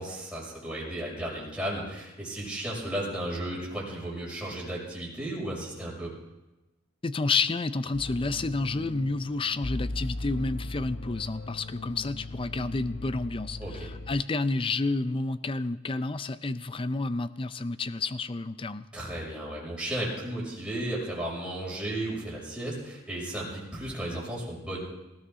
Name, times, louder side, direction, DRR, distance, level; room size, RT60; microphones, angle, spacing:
voice 1, 0.0-6.1 13.6-13.9 18.9-24.8, right 1 dB, 5° right, -6 dB, 6.1 m, -34 dB
voice 2, 7.0-18.9, left 3 dB, 25° left, 13 dB, 0.5 m, -30 dB
sound 1, 7.9-14.2, left 2 dB, 65° left, 0.9 m, -38 dB
18.5 x 17.0 x 3.8 m, 0.99 s
head